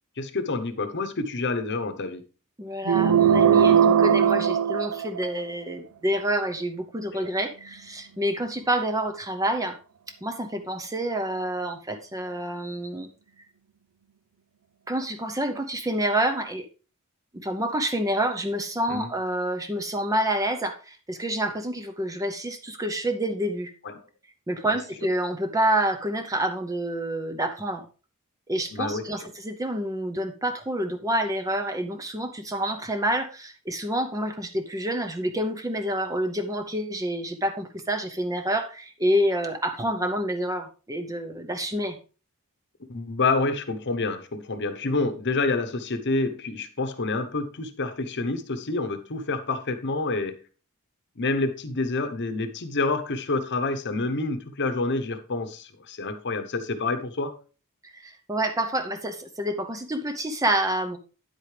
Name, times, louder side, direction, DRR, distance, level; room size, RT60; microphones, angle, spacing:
voice 1, 0.2-2.2 7.1-7.3 18.9-19.1 23.8-24.0 24.7-24.8 28.7-29.0 42.9-50.4 51.2-57.4, left 3 dB, 50° left, 0.9 m, -28 dB
voice 2, 2.6-9.8 10.2-13.1 14.9-16.7 17.3-23.7 24.5-27.8 28.5-42.0 57.8-61.0, right 1 dB, 15° right, 0.6 m, -28 dB
sound 1, 2.8-5.5, right 8 dB, 80° right, 0.5 m, -19 dB
9.8 x 8.2 x 3.3 m
head